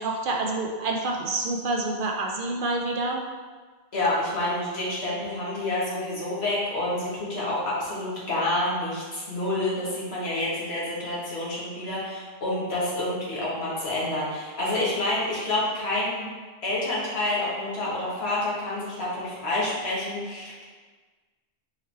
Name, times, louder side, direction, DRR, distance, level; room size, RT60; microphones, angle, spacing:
voice 1, 0.0-3.2, right 2 dB, 60° right, 1 dB, 0.6 m, -27 dB
voice 2, 3.9-16.3 16.6-20.6, left 1 dB, 75° left, -7 dB, 1.5 m, -28 dB
4.8 x 3.2 x 3.3 m, 1.4 s
omnidirectional pair, 1.1 m